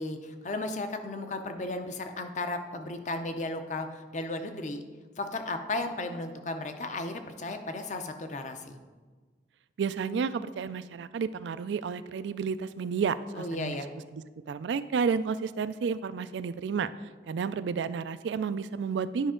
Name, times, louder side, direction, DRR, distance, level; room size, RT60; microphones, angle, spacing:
voice 1, 0.0-4.8 5.2-8.8 13.3-13.9, left 2 dB, 45° left, 7 dB, 0.6 m, -35 dB
voice 2, 9.8-13.8 14.1-16.9 17.3-19.3, right 6 dB, 80° right, 13 dB, 0.3 m, -31 dB
10.0 x 5.1 x 3.7 m, 1.4 s
head